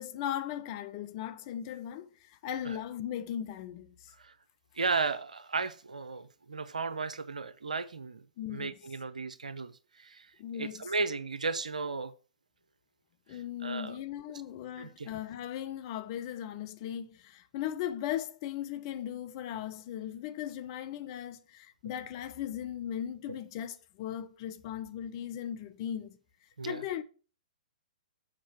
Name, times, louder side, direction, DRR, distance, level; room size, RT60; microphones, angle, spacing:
voice 1, 0.0-2.1 2.4-3.9 8.4-8.7 10.4-10.8 13.3-26.2 26.7-27.0, left 10 dB, 40° left, 0.8 m, -38 dB
voice 2, 4.7-8.2 8.5-12.1 13.3-14.0 14.8-15.1 23.3-23.4 26.6-26.8, right 4 dB, 80° right, 0.7 m, -35 dB
7.5 x 5.3 x 5.8 m
figure-of-eight pair, 120°, 4 cm